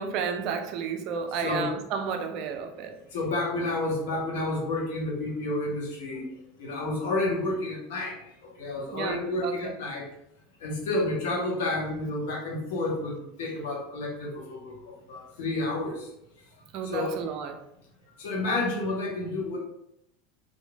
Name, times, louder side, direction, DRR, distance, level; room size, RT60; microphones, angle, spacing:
voice 1, 0.0-2.9 8.9-9.8 16.7-17.6, right 6 dB, 50° right, 6 dB, 0.4 m, -32 dB
voice 2, 3.1-6.3 6.6-8.2 8.6-10.1 10.6-16.1 16.8-17.1 18.2-19.6, left 2 dB, 65° left, -2 dB, 0.8 m, -30 dB
3.0 x 2.5 x 2.2 m, 0.80 s
figure-of-eight pair, 80°, 0 cm